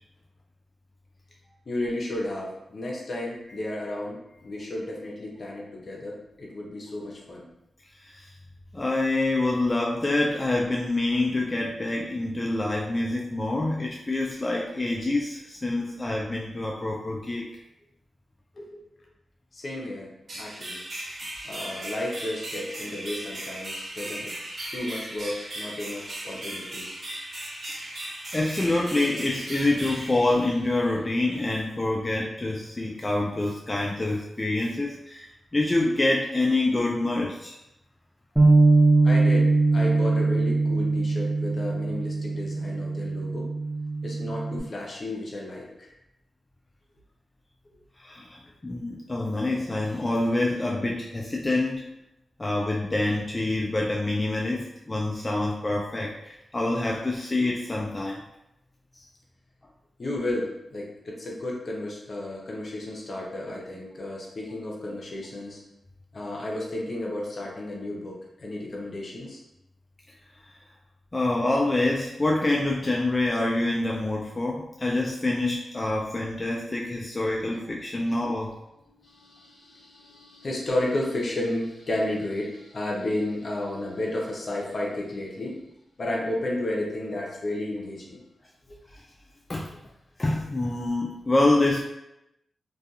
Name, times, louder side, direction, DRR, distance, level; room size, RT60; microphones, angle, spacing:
voice 1, 1.7-7.5 18.5-18.7 19.5-20.1 20.4-20.8 21.4-24.3 24.7-26.9 39.0-43.5 44.0-45.9 60.0-65.6 66.1-69.4 78.3-78.4 78.9-85.6 86.0-88.2, left 1 dB, 55° left, -2 dB, 0.7 m, -32 dB
voice 2, 8.7-17.5 28.3-37.5 48.0-51.8 52.4-58.2 58.9-59.0 71.1-78.6 88.9-89.0 89.5-89.7 90.2-91.8, left 2 dB, 30° left, -2 dB, 0.3 m, -26 dB
sound 1, 20.3-31.0, right 1 dB, 60° right, 0.7 m, -37 dB
Bass guitar, 38.4-44.6, right 3 dB, 10° right, 0.7 m, -22 dB
2.5 x 2.3 x 2.3 m, 0.89 s
cardioid pair, 55°, 0 cm